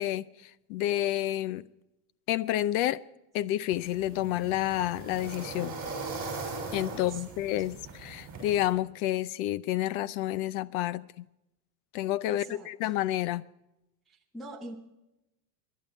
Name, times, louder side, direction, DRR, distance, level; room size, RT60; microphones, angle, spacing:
voice 1, 0.0-1.7 2.3-3.0 3.3-5.8 6.7-11.2 11.9-13.5, left 13 dB, 65° left, 0.7 m, -30 dB
sound 1, 3.7-8.7, right 3 dB, 20° right, 5.9 m, -40 dB
voice 2, 6.9-7.4 12.3-12.9 14.1-14.8, right 2 dB, ahead, 0.9 m, -44 dB
23.5 x 11.0 x 4.4 m
cardioid pair, 180°, 46 cm